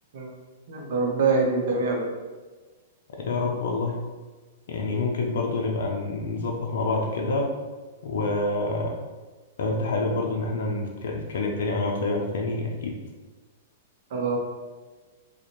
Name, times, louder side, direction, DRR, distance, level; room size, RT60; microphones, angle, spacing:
voice 1, 0.7-2.0 14.1-14.4, right 4 dB, 65° right, 0 dB, 0.6 m, -24 dB
voice 2, 3.2-4.0 4.7-7.5 8.0-9.0 9.6-13.0, left 3 dB, 70° left, 0 dB, 0.4 m, -27 dB
2.5 x 2.1 x 2.9 m, 1.3 s
hypercardioid pair, 120°, 0 cm